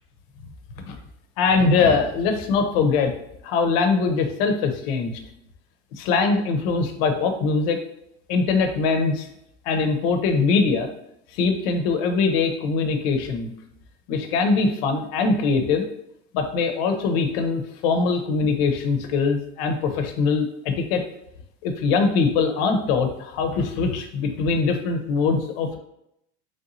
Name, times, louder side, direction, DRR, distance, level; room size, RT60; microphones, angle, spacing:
voice 1, 1.4-3.1 3.4-5.1 6.0-7.8 8.3-9.3 9.6-10.9 11.3-13.5 14.1-15.8 16.3-21.0 21.6-25.8, left 4 dB, 65° left, 6 dB, 0.7 m, -22 dB
4.0 x 3.4 x 2.7 m, 0.78 s
cardioid pair, 170°, 32 cm